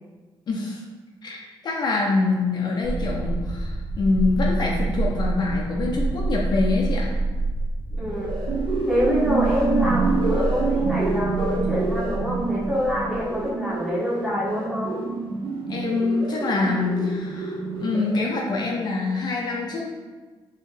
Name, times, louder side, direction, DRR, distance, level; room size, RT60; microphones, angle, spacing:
voice 1, 0.5-0.8 1.2-7.1 15.7-19.9, left 3 dB, 50° left, -1 dB, 0.5 m, -25 dB
sound 1, 2.8-13.4, right 3 dB, 30° right, 0.7 m, -28 dB
sound 2, 7.9-18.5, right 3 dB, 60° right, 0.8 m, -27 dB
voice 2, 8.0-8.3 8.9-15.0, left 1 dB, 5° right, -7 dB, 1.1 m, -26 dB
4.2 x 3.7 x 2.6 m, 1.3 s
wide cardioid pair, 145°, 9 cm